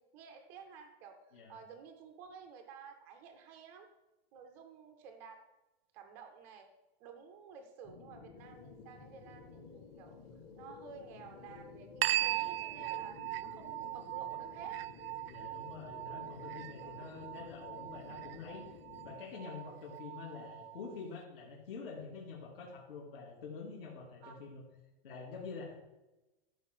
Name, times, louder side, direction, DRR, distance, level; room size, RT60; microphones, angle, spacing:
voice 1, 0.0-3.9 4.3-5.4 5.9-6.7 7.0-10.2 10.5-14.8 15.4-15.6 16.8-17.0 19.0-19.1 24.2-24.4, right 6 dB, 10° right, 5 dB, 0.3 m, -53 dB
sound 1, 7.8-19.2, left 5 dB, 25° left, 0.7 m, -53 dB
sound 2, 12.0-21.0, right 15 dB, 80° right, 0.4 m, -39 dB
voice 2, 15.3-18.7 19.0-24.6 25.0-25.7, left 4 dB, 70° left, -4 dB, 2.8 m, -47 dB
13.5 x 5.3 x 8.2 m, 1.0 s
supercardioid pair, 180°, 30 cm